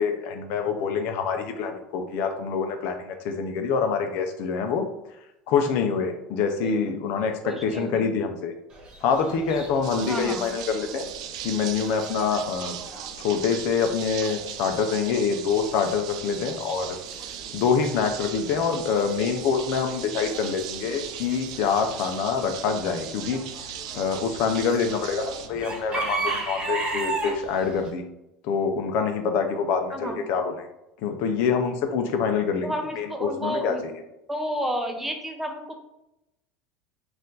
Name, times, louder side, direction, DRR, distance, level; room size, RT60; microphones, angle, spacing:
voice 1, 0.0-4.9 5.5-8.5 9.0-11.1 11.4-12.7 13.2-17.0 17.5-23.4 23.9-28.0 28.4-30.7 31.0-33.8, left 6 dB, 60° left, 6 dB, 0.6 m, -26 dB
voice 2, 6.6-7.1 7.4-8.1 10.0-10.5 29.9-30.2 32.6-33.8 34.3-35.7, equal, 5° right, 3 dB, 0.6 m, -31 dB
Chicken rooster / Bird, 8.7-27.9, right 3 dB, 30° right, 1.2 m, -38 dB
sound 1, 9.8-25.5, right 10 dB, 90° right, 0.4 m, -38 dB
4.3 x 2.6 x 3.8 m, 0.88 s
supercardioid pair, 125°, 3 cm